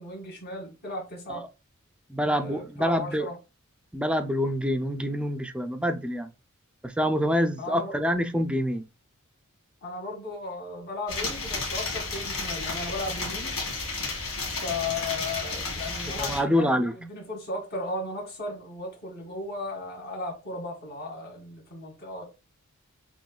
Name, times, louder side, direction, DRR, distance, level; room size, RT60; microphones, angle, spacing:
voice 1, 0.0-1.4 2.2-3.4 7.6-8.0 9.8-13.5 14.6-22.2, left 2 dB, 50° left, 2.1 m, -36 dB
voice 2, 2.1-3.3 3.9-6.3 6.8-8.8 16.2-16.9, equal, 5° right, 0.5 m, -26 dB
sound 1, 11.1-16.4, left 3 dB, 75° left, 1.7 m, -32 dB
7.1 x 3.0 x 2.3 m
head